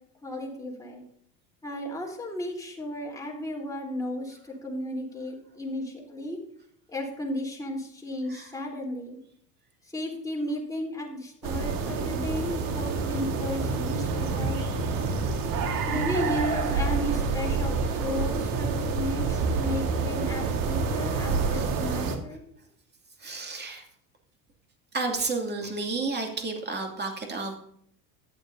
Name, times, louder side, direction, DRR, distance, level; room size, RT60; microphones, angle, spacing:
voice 1, 0.2-1.0 1.6-6.4 6.9-9.2 9.9-14.9 15.9-22.4, left 1 dB, 5° left, -1 dB, 3.7 m, -34 dB
sound 1, 11.4-22.2, right 4 dB, 45° right, 1.8 m, -28 dB
voice 2, 23.2-23.9 24.9-27.6, right 3 dB, 20° right, 3 dB, 2.6 m, -31 dB
14.0 x 10.0 x 2.7 m, 0.67 s
hypercardioid pair, 80°, 48 cm